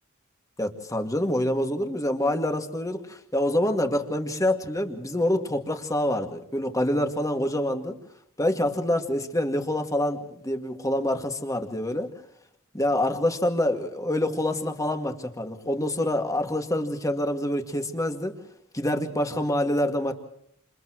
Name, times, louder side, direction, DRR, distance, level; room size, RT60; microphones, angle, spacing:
voice 1, 0.6-8.0 8.4-12.1 12.7-18.4 18.7-20.1, left 1 dB, 15° left, 5 dB, 2.2 m, -26 dB
29.0 x 28.5 x 3.1 m, 0.71 s
head